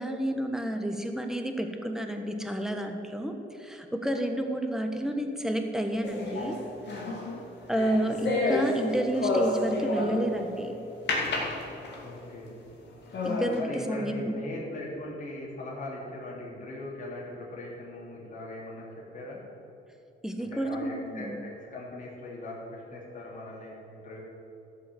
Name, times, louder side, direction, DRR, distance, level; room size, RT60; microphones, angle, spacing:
voice 1, 0.0-6.6 7.7-10.8 13.2-14.3 20.2-21.4, right 1 dB, 5° right, 5 dB, 1.3 m, -30 dB
sound 1, 6.0-10.4 11.1-12.2 12.7-12.8 13.1-13.6, left 2 dB, 60° left, 2.6 m, -30 dB
voice 2, 8.0-8.3 12.0-12.6 13.5-18.9 19.1-19.4 20.4-24.2, left 1 dB, 40° left, -5 dB, 2.9 m, -40 dB
13.0 x 5.7 x 7.7 m, 2.9 s
cardioid pair, 90°, 20 cm